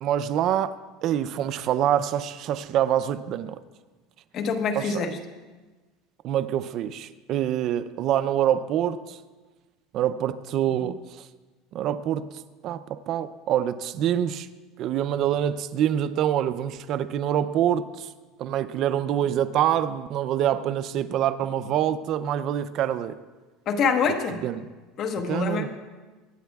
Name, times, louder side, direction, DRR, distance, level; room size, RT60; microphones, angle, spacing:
voice 1, 0.0-0.7 1.0-3.6 4.8-5.1 6.2-9.2 9.9-11.2 11.7-12.3 12.6-14.5 14.8-18.1 18.4-23.2 24.3-24.7 25.3-25.7, right 10 dB, 50° right, 13 dB, 0.5 m, -26 dB
voice 2, 4.3-5.2 23.7-24.4 25.0-25.8, left 5 dB, 45° left, 5 dB, 1.1 m, -25 dB
24.5 x 10.0 x 2.3 m, 1.3 s
supercardioid pair, 135°, 0 cm